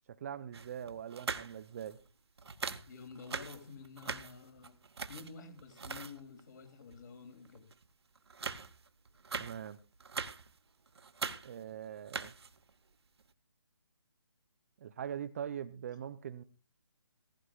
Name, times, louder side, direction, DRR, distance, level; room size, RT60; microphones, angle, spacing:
voice 1, 0.1-2.0 9.3-9.8 11.4-12.3 14.8-16.4, right 9 dB, 30° right, 12 dB, 0.5 m, -42 dB
sound 1, 0.5-2.1 2.4-6.4 6.9-7.0 7.4-7.9 8.2-10.6 10.9-11.7 12.0-12.7 13.2-13.3, right 5 dB, 65° right, 1.0 m, -42 dB
voice 2, 2.9-4.8 5.0-7.7, left 5 dB, 40° left, 6 dB, 2.8 m, -50 dB
16.5 x 15.0 x 2.4 m, 0.32 s
figure-of-eight pair, 150°, 15 cm